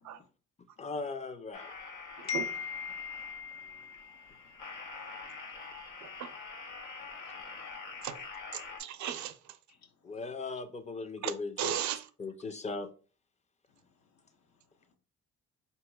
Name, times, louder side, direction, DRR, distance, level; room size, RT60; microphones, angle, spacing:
voice 1, 0.8-1.7 10.0-11.7 12.2-12.9, left 3 dB, 25° left, 0.5 m, -38 dB
sound 1, 1.5-8.8, left 4 dB, 90° left, 1.0 m, -45 dB
voice 2, 2.3-4.5, left 6 dB, 60° left, 0.8 m, -39 dB
voice 3, 8.5-9.4 11.2-12.1, right 10 dB, 70° right, 0.5 m, -35 dB
4.1 x 2.9 x 2.3 m
cardioid pair, 90°, 30 cm